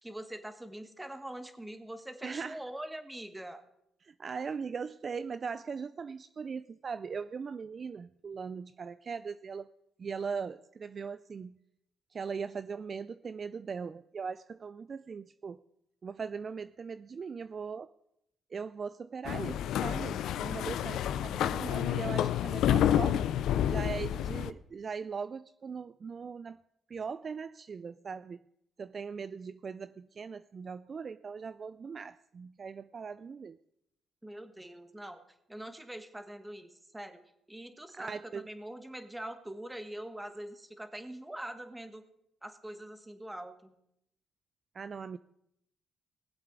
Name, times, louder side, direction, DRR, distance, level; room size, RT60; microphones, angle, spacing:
voice 1, 0.0-3.6 34.2-35.2 35.5-37.2 37.5-42.0 42.4-43.7, right 1 dB, 10° right, 8 dB, 1.3 m, -43 dB
voice 2, 2.2-2.6 4.0-9.7 10.0-11.6 12.1-15.6 16.0-17.9 18.5-23.3 23.7-26.6 26.9-28.4 28.8-33.6 37.9-38.4 44.7-45.2, right 5 dB, 45° right, 14 dB, 0.3 m, -40 dB
sound 1, 19.2-24.5, left 10 dB, 80° left, 0.4 m, -29 dB
19.5 x 7.9 x 3.8 m, 0.79 s
cardioid pair, 90°, 0 cm